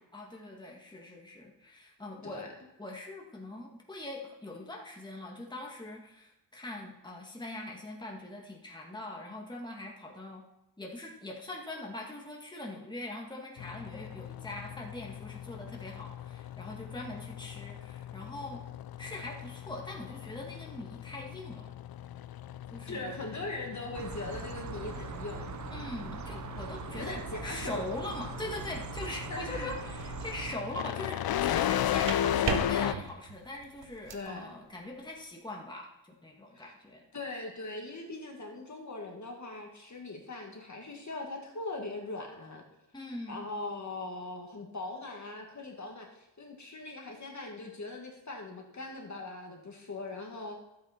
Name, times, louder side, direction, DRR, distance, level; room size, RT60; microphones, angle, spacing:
voice 1, 0.1-2.4 2.8-10.4 10.8-18.6 19.0-21.7 22.7-23.2 25.7-37.0 42.9-43.4, left 2 dB, 10° left, -1 dB, 1.8 m, -42 dB
sound 1, 13.6-32.9, left 11 dB, 60° left, 0.5 m, -36 dB
voice 2, 22.9-25.6 27.0-27.9 29.3-29.7 34.1-34.5 36.5-36.6 37.1-42.6 43.3-50.6, left 2 dB, 40° left, 1 dB, 2.0 m, -40 dB
sound 2, 23.9-30.6, right 7 dB, 45° right, 0.6 m, -41 dB
sound 3, 30.0-30.4 31.7-34.3, right 7 dB, 85° right, 0.9 m, -37 dB
12.0 x 8.3 x 4.4 m, 0.96 s
wide cardioid pair, 85°, 42 cm